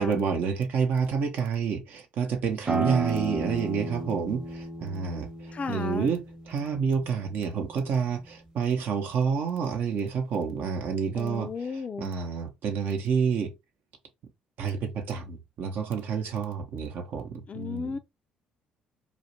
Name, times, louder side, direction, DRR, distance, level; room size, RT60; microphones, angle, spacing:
voice 1, 0.0-5.3 5.7-11.5 12.0-13.5 14.6-18.0, right 6 dB, 60° right, 0.6 m, -29 dB
sound 1, 2.6-8.0, right 3 dB, 25° right, 0.9 m, -33 dB
voice 2, 5.5-6.1 11.2-12.1 17.5-18.0, left 5 dB, 40° left, 0.4 m, -34 dB
2.4 x 2.1 x 2.7 m
hypercardioid pair, 55°, 4 cm